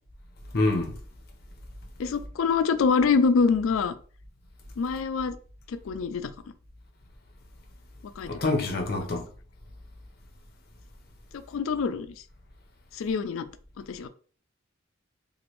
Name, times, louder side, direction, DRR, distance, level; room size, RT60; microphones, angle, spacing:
voice 1, 0.5-0.9 8.2-9.2, left 2 dB, 50° left, 0.7 m, -26 dB
voice 2, 2.0-3.9 4.8-5.4 5.7-6.3 8.2-8.3 11.3-12.1 12.9-13.5 13.8-14.1, left 5 dB, 85° left, 0.4 m, -25 dB
3.0 x 2.5 x 3.0 m
head